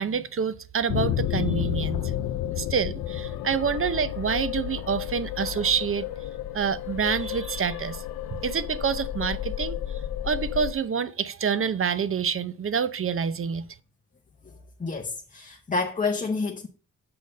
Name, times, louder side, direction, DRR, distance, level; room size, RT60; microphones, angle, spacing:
voice 1, 0.0-2.0 2.6-6.1 6.5-8.0 8.4-9.8 10.2-13.7, right 6 dB, 40° right, 0.6 m, -27 dB
sound 1, 0.9-10.7, left 11 dB, 80° left, 0.6 m, -31 dB
voice 2, 14.8-16.7, left 4 dB, 20° left, 0.8 m, -28 dB
6.8 x 6.2 x 5.3 m
cardioid pair, 100°, 35 cm